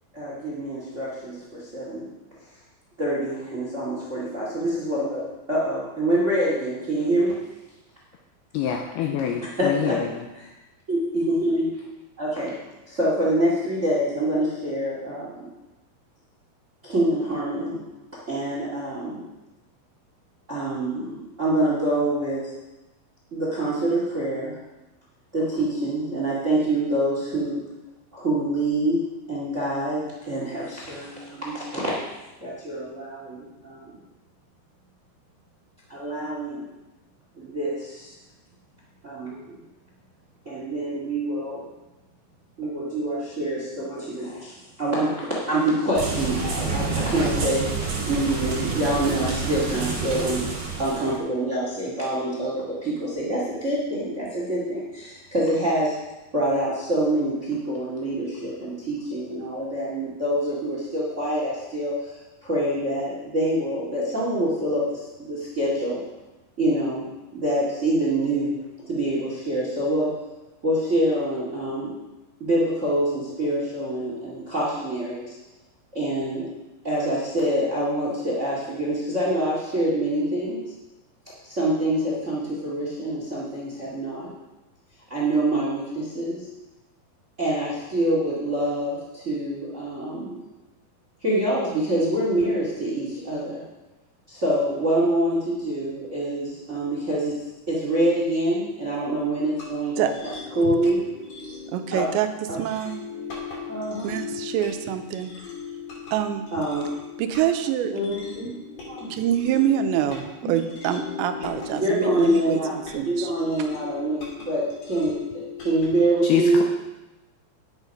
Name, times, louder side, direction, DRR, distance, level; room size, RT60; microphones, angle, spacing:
voice 1, 0.1-2.1 3.0-7.3 9.4-10.0 10.3-10.5 10.9-11.7 12.2-12.5 12.9-15.5 16.8-17.8 18.3-19.2 20.5-22.5 23.3-24.5 25.3-27.6 28.1-31.9 32.4-33.9 35.9-36.7 37.4-38.1 39.0-39.6 40.4-41.6 42.6-50.4 50.8-55.9 56.3-62.2 62.4-66.0 66.6-70.1 70.6-71.9 72.4-75.4 75.9-76.5 76.8-80.6 81.4-84.3 85.1-86.5 87.4-90.4 91.2-93.6 94.3-97.4 97.7-101.0 101.9-102.1 102.5-102.6 103.7-104.1 106.5-106.9 107.9-108.5 108.9-109.1 111.7-112.7 113.0-116.6, right 1 dB, 55° right, -4 dB, 0.8 m, -26 dB
voice 2, 8.5-10.2 116.2-116.6, left 9 dB, 90° left, 3 dB, 2.3 m, -25 dB
sound 1, 45.9-51.2, right 4 dB, 35° right, 1.7 m, -28 dB
sound 2, 99.2-115.9, left 5 dB, 50° left, 3.4 m, -39 dB
voice 3, 101.7-102.3 102.5-103.0 104.0-105.3 106.1-106.5 107.2-107.9 109.1-113.3, right 10 dB, 85° right, 8 dB, 2.8 m, -25 dB
10.5 x 8.2 x 5.3 m, 1.0 s
omnidirectional pair, 5.2 m